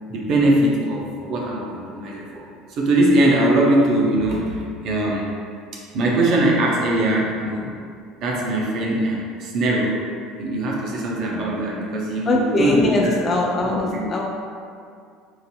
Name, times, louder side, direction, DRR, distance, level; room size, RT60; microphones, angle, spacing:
voice 1, 0.1-2.5 2.8-5.3 5.9-7.7 8.2-10.0 10.4-13.1 13.6-14.1, right 1 dB, 55° right, -3 dB, 0.5 m, -21 dB
voice 2, 12.3-14.2, left 2 dB, 30° left, -1 dB, 0.3 m, -21 dB
3.9 x 2.5 x 2.2 m, 2.3 s
hypercardioid pair, 65°, 0 cm